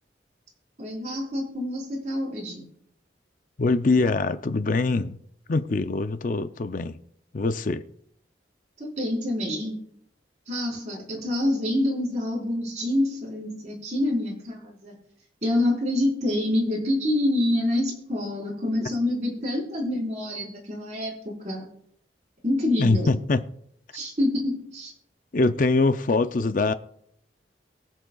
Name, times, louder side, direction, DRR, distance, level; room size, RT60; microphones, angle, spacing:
voice 1, 0.8-2.6 8.8-9.8 10.5-14.9 15.4-21.1 21.4-21.6 22.4-23.1 23.9-24.9, left 1 dB, 40° right, 4.3 m, -26 dB
voice 2, 3.6-5.2 5.5-7.0 7.3-7.8 22.8-23.4 25.3-26.7, left 3 dB, 50° left, 0.5 m, -23 dB
23.0 x 7.7 x 2.3 m
head